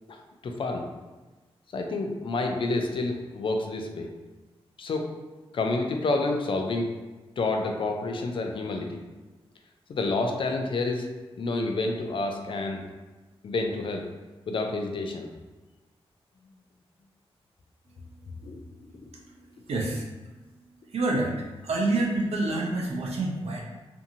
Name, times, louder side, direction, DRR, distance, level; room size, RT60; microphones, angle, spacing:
voice 1, 0.1-0.9 1.7-4.1 4.8-5.1 5.5-6.9 7.4-9.0 9.9-11.1 11.4-12.8 13.4-14.1 14.5-15.3 18.4-18.6, left 2 dB, 55° left, 3 dB, 0.4 m, -29 dB
voice 2, 19.7-20.0 20.9-21.3 21.6-23.6, right 2 dB, 80° right, -1 dB, 0.6 m, -27 dB
2.6 x 2.5 x 2.7 m, 1.2 s
wide cardioid pair, 95°, 11 cm